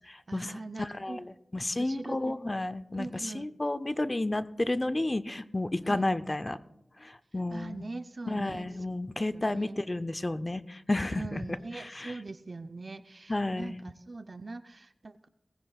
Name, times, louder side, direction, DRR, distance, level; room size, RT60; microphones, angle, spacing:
voice 1, 0.3-1.3 1.8-2.4 2.9-3.5 5.8-6.1 7.5-8.7 9.5-9.8 11.1-15.3, right 3 dB, 55° right, 10 dB, 0.5 m, -42 dB
voice 2, 0.8-6.6 7.0-7.8 8.3-12.2 13.3-13.8, left 2 dB, 30° left, 12 dB, 0.6 m, -32 dB
19.0 x 15.5 x 2.4 m, 0.89 s
wide cardioid pair, 60°, 0 cm